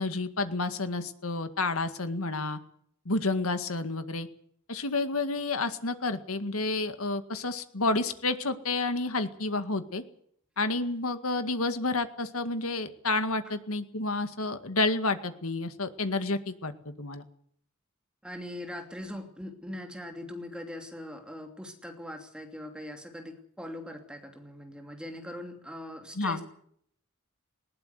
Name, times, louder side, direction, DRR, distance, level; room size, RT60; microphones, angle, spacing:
voice 1, 0.0-2.6 3.1-4.3 4.7-10.0 10.6-16.7 17.0-17.2 26.2-26.4, left 3 dB, 80° left, 9 dB, 2.0 m, -30 dB
voice 2, 18.2-26.4, left 1 dB, 5° right, 4 dB, 2.9 m, -41 dB
20.0 x 18.5 x 8.2 m, 0.65 s
head